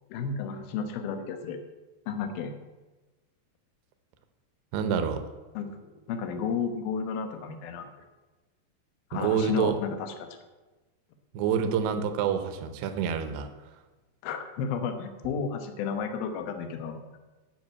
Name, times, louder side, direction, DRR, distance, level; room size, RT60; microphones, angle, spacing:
voice 1, 0.1-1.6 2.1-2.5 5.5-7.9 9.1-10.3 14.2-17.0, left 6 dB, 70° left, 7 dB, 2.8 m, -32 dB
voice 2, 4.7-5.2 9.1-9.8 11.3-13.5, right 7 dB, 80° right, 8 dB, 2.9 m, -27 dB
10.5 x 6.6 x 8.5 m, 1.2 s
omnidirectional pair, 4.8 m